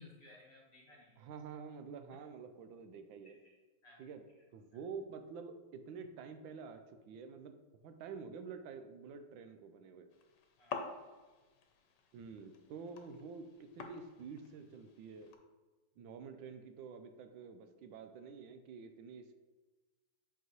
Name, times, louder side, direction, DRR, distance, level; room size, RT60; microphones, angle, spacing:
voice 1, 0.0-1.3 3.2-3.3 3.8-4.4 4.7-4.8 10.6-10.8, left 2 dB, 35° left, -3 dB, 1.3 m, -59 dB
voice 2, 1.2-3.4 4.0-4.2 4.5-7.6 7.8-10.1 12.1-15.3 16.0-19.4, right 5 dB, 90° right, 7 dB, 1.4 m, -48 dB
sound 1, 10.1-15.4, left 5 dB, 70° left, 1.3 m, -49 dB
7.9 x 4.8 x 3.0 m, 1.2 s
omnidirectional pair, 2.1 m